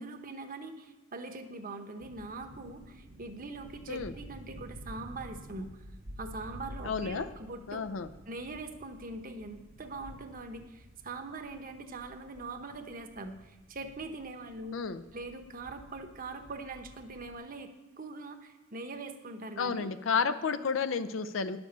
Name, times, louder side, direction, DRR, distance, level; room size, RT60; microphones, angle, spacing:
voice 1, 0.0-5.8 6.2-7.8 8.3-14.8 15.1-17.7 18.0-19.9, right 3 dB, 45° right, 6 dB, 1.0 m, -42 dB
sound 1, 2.0-17.4, equal, 75° right, 1.3 m, -51 dB
voice 2, 6.8-7.3 7.7-8.1 14.7-15.0 19.6-21.6, left 5 dB, 75° left, 11 dB, 0.5 m, -31 dB
10.5 x 7.0 x 6.8 m, 1.1 s
head